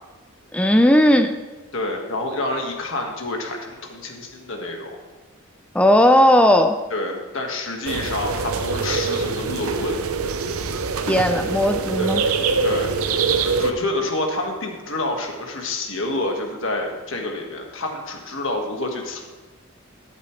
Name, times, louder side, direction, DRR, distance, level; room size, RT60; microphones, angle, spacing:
voice 1, 0.5-1.4 5.7-6.8 11.1-12.2, left 1 dB, 5° left, 6 dB, 0.3 m, -16 dB
voice 2, 1.7-5.0 6.9-10.0 12.0-12.2 12.6-12.9 13.6-19.2, left 2 dB, 60° left, 2 dB, 1.6 m, -28 dB
sound 1, 7.9-13.7, right 4 dB, 85° right, 0.7 m, -24 dB
12.5 x 8.3 x 3.2 m, 1.3 s
head